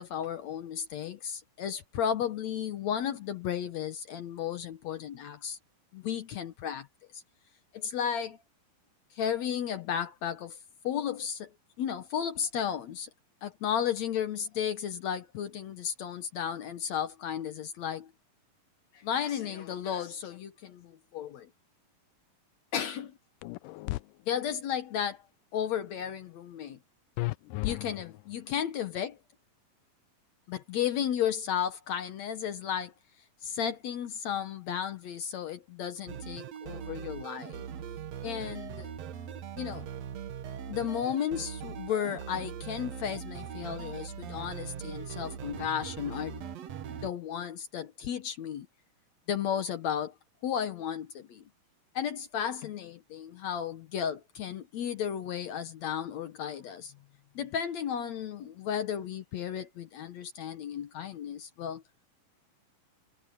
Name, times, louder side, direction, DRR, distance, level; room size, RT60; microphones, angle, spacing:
voice 1, 0.0-5.6 5.9-6.9 7.1-7.2 7.7-8.4 9.1-10.6 10.8-11.5 11.8-13.1 13.4-18.1 18.9-21.5 22.7-23.1 24.3-25.2 25.5-26.8 27.6-29.2 30.5-32.9 33.4-37.6 38.2-38.9 39.6-39.9 40.7-46.5 46.9-48.7 49.3-50.1 50.4-51.4 52.0-56.9 57.4-61.8, left 8 dB, 65° left, 2.0 m, -34 dB
sound 1, 23.4-24.0 27.2-28.3, left 19 dB, 80° left, 2.0 m, -34 dB
sound 2, 36.1-47.1, right 8 dB, 60° right, 2.1 m, -41 dB
omnidirectional pair, 4.0 m